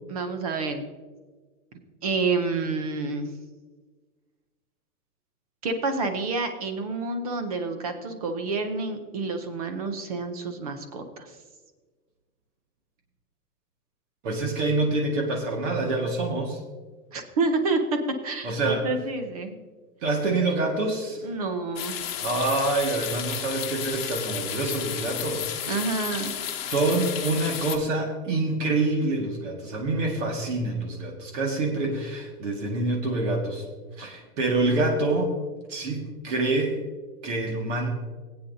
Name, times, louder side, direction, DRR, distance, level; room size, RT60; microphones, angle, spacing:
voice 1, 0.1-0.9 2.0-3.3 5.6-11.4 17.1-19.6 21.2-22.0 25.7-26.3, right 3 dB, 25° right, 7 dB, 0.6 m, -28 dB
voice 2, 14.2-16.6 18.4-18.9 20.0-21.3 22.2-25.5 26.7-33.7 34.0-35.4 35.7-36.8 37.2-37.9, right 2 dB, 50° right, 0 dB, 1.9 m, -26 dB
sound 1, 21.8-27.8, left 10 dB, 40° left, 1.1 m, -32 dB
20.0 x 8.6 x 2.7 m, 1.4 s
supercardioid pair, 180°, 46 cm